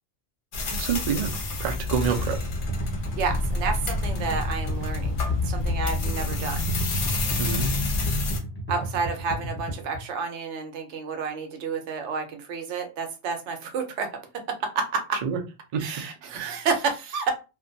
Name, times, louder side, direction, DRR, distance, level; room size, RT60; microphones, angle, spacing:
sound 1, 0.5-8.4, left 2 dB, 55° left, 0.7 m, -28 dB
voice 1, 0.6-1.3 1.6-2.4 7.4-7.7 15.2-15.4 15.7-15.8 16.3-16.6, right 7 dB, 60° right, 0.4 m, -27 dB
sound 2, 2.1-10.0, right 1 dB, 10° left, 0.9 m, -34 dB
voice 2, 3.1-5.2 5.4-6.7 8.7-14.2 14.5-15.2 15.8-17.3, right 5 dB, 80° right, 0.9 m, -30 dB
2.5 x 2.2 x 2.5 m
omnidirectional pair, 1.2 m